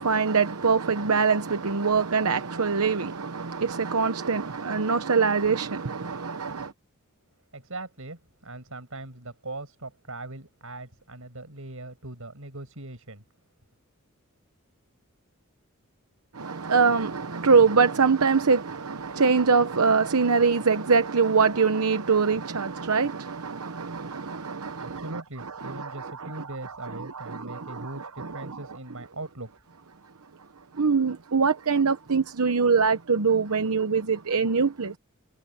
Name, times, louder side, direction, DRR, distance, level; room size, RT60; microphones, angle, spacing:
voice 1, 0.0-6.7 16.3-25.0 25.6-26.3 27.0-28.5 30.7-35.0, right 5 dB, 90° right, 0.9 m, -24 dB
voice 2, 7.5-13.2 24.8-29.5, right 2 dB, 70° right, 7.2 m, -40 dB
head